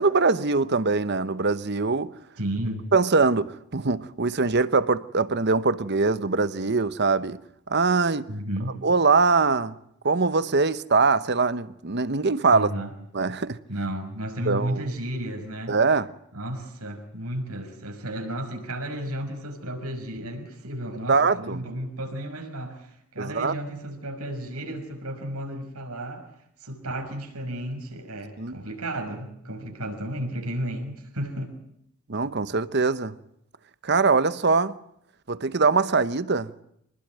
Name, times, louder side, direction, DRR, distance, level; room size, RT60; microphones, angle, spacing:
voice 1, 0.0-2.1 2.9-7.4 7.7-8.3 8.8-9.8 10.0-12.7 13.1-13.6 14.5-14.8 15.7-16.1 21.1-21.6 23.2-23.5 28.4-28.6 32.1-33.1 33.8-34.8 35.3-36.5, right 4 dB, 50° right, 1.0 m, -22 dB
voice 2, 2.4-2.8 8.3-8.8 12.5-12.9 13.7-15.8 16.3-26.3 26.6-31.5, right 1 dB, 85° right, 5.7 m, -33 dB
26.0 x 20.5 x 9.2 m
head